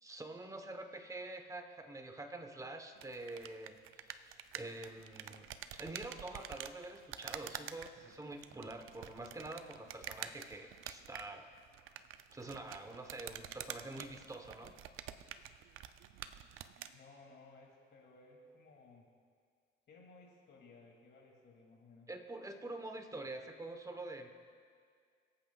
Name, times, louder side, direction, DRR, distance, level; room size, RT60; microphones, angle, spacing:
voice 1, 0.0-5.5 5.7-11.5 12.3-14.7 22.1-24.3, right 2 dB, 15° right, 6 dB, 1.0 m, -46 dB
sound 1, 3.0-17.0, right 10 dB, 80° right, 0.5 m, -48 dB
voice 2, 16.8-19.1 19.9-22.1, left 3 dB, 55° left, -1 dB, 2.6 m, -59 dB
24.5 x 8.6 x 2.4 m, 2.1 s
cardioid pair, 95°, 21 cm